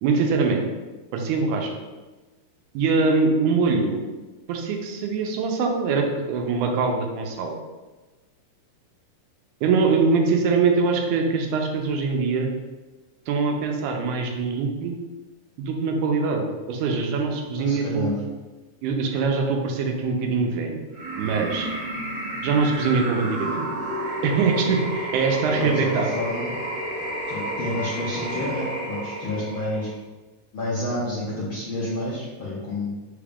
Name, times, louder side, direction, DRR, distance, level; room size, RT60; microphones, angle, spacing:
voice 1, 0.0-0.6 1.1-1.8 2.7-4.0 4.5-7.6 9.6-12.5 13.3-15.0 15.6-18.1 18.8-20.8 21.2-21.7 22.4-23.7 24.2-26.1, right 4 dB, 85° right, 2 dB, 2.1 m, -23 dB
voice 2, 17.6-18.2 25.6-26.5 27.3-29.9 30.5-32.9, left 1 dB, 70° left, -8 dB, 1.3 m, -29 dB
sound 1, 20.9-30.0, right 1 dB, 60° right, 1.1 m, -31 dB
5.4 x 2.4 x 3.4 m, 1.2 s
omnidirectional pair, 3.5 m